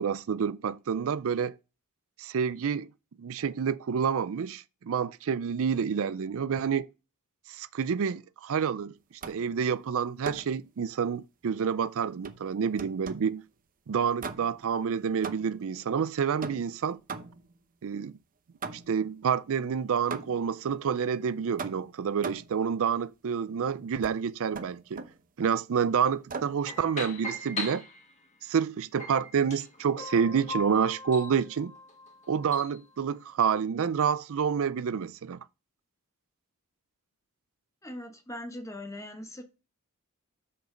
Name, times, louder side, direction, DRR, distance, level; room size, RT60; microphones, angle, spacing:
voice 1, 0.0-1.5 2.2-2.9 3.2-6.9 7.5-8.9 9.3-13.4 13.9-17.0 17.8-18.2 18.7-25.1 25.4-27.8 28.4-31.7 32.3-35.4, right 7 dB, 65° right, 0.4 m, -28 dB
sound 1, 9.2-9.6 10.2-10.6 12.2-13.4 14.2-14.7 15.2-15.7 16.4-17.6 18.6-19.1 20.1-20.6 21.6-22.6 24.0-24.2 24.5-25.2 26.3-26.6, right 4 dB, 40° right, 0.7 m, -40 dB
sound 2, 26.7-28.4 29.0-32.8, left 2 dB, 35° left, 1.8 m, -39 dB
voice 2, 37.8-39.4, left 1 dB, 15° left, 1.2 m, -40 dB
6.4 x 5.4 x 5.1 m
head